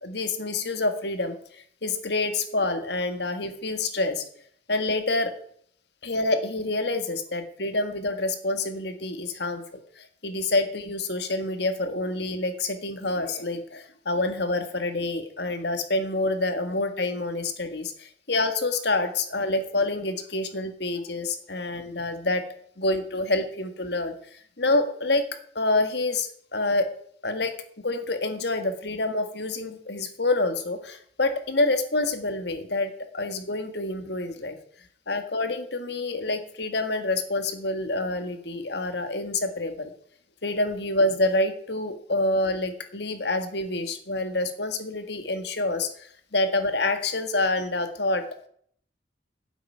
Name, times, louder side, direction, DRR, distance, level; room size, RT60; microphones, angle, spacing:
voice 1, 0.0-4.2 4.7-5.3 6.0-9.6 10.0-22.4 22.8-25.3 25.6-26.9 27.2-34.6 35.1-39.9 40.4-48.5, left 2 dB, 60° left, 8 dB, 1.8 m, -27 dB
10.0 x 8.1 x 9.2 m, 0.62 s
head